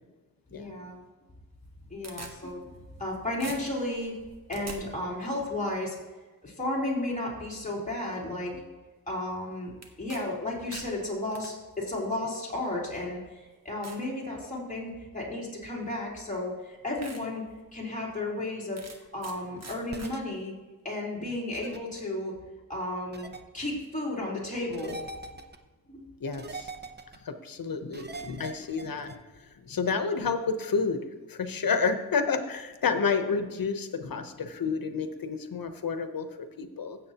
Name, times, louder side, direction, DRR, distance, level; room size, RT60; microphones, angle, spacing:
voice 1, 0.5-1.0 1.9-2.7 3.0-4.2 4.5-6.0 6.4-8.6 9.1-9.7 10.0-13.4 13.6-18.8 19.1-20.5 20.8-22.3 22.7-23.3 23.5-25.0 25.9-26.0, left 1 dB, 20° left, -5 dB, 3.8 m, -33 dB
sound 1, 1.6-3.1 3.4-4.8 9.8-10.2 10.5-11.5 12.4-12.5 13.1-13.2 13.8-14.1 14.6-14.9 16.1-16.2 16.6-16.7 17.0-17.2 17.7-17.8 18.8-19.4 19.6-20.1, right 3 dB, 50° right, 1.4 m, -44 dB
sound 2, 19.9-20.2 21.5-21.8 23.1-23.4 24.7-25.6 26.3-27.2 27.9-29.2, right 3 dB, 30° right, 0.8 m, -41 dB
voice 2, 26.2-26.7 27.2-29.1 29.6-31.0 31.3-37.0, left 5 dB, 85° left, 8 dB, 1.0 m, -30 dB
16.0 x 7.5 x 2.9 m, 1.2 s
wide cardioid pair, 85°, 34 cm